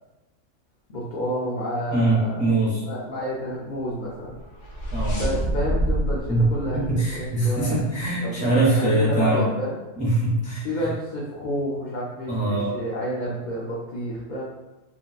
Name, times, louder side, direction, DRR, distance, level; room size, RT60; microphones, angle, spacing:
voice 1, 0.9-2.5 2.8-4.4 5.2-6.8 7.1-7.9 8.2-9.8 10.6-14.4, equal, 85° left, -6 dB, 0.4 m, -30 dB
voice 2, 1.9-2.8 4.9-5.2 6.3-6.5 6.7-9.5 10.0-10.7 12.3-12.7, right 2 dB, 10° right, -8 dB, 0.4 m, -22 dB
sound 1, 4.2-7.8, equal, 60° left, 1.0 m, -28 dB
2.8 x 2.8 x 2.4 m, 1.1 s
omnidirectional pair, 1.5 m